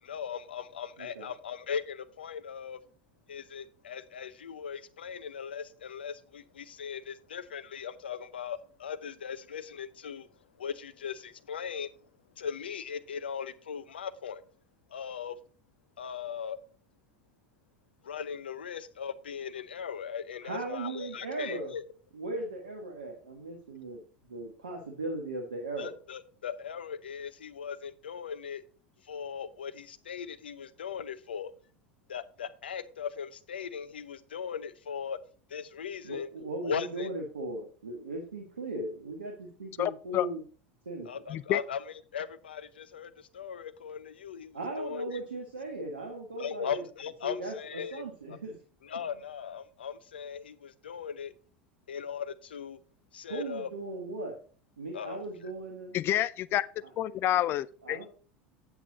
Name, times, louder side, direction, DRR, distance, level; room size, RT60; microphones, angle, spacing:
voice 1, 0.0-2.8 3.3-10.3 10.6-11.9 12.4-14.4 14.9-15.4 16.0-16.6 18.0-21.8 25.8-28.6 29.0-31.5 32.1-35.2 35.5-36.3 36.6-37.1 41.0-45.2 46.4-48.1 48.8-51.3 51.9-52.8 53.1-53.7 54.9-55.2, left 7 dB, 85° left, 0.7 m, -38 dB
voice 2, 1.0-1.3 20.4-21.7 22.1-24.0 24.3-26.0 36.0-40.4 40.8-41.1 44.5-46.8 47.2-48.6 53.3-54.4 54.8-56.0 57.3-57.4 57.8-58.1, right 2 dB, 90° right, 1.6 m, -38 dB
voice 3, 39.8-40.3 41.3-41.6 55.9-56.7 57.0-58.0, left 13 dB, 45° left, 0.4 m, -28 dB
8.3 x 8.0 x 3.9 m
hypercardioid pair, 80°, 5 cm